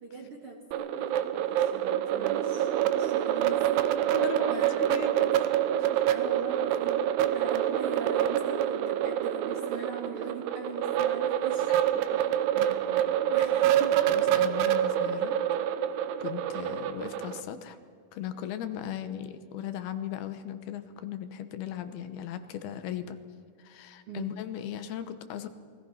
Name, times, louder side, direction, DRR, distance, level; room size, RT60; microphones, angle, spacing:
voice 1, 0.0-3.7 4.0-4.1 4.5-4.8 6.1-11.7 12.1-12.2 12.5-13.0 13.3-14.0 24.1-24.4, right 5 dB, 50° right, 1 dB, 1.8 m, -41 dB
sound 1, 0.7-17.4, right 11 dB, 85° right, 2.9 m, -27 dB
voice 2, 4.1-5.3 5.8-6.0 12.0-12.2 12.9-13.0 13.3-13.4 14.0-15.4 16.2-17.8 18.1-23.2 23.6-25.5, left 10 dB, 75° left, 10 dB, 2.9 m, -38 dB
28.5 x 20.0 x 5.7 m, 2.1 s
omnidirectional pair, 4.5 m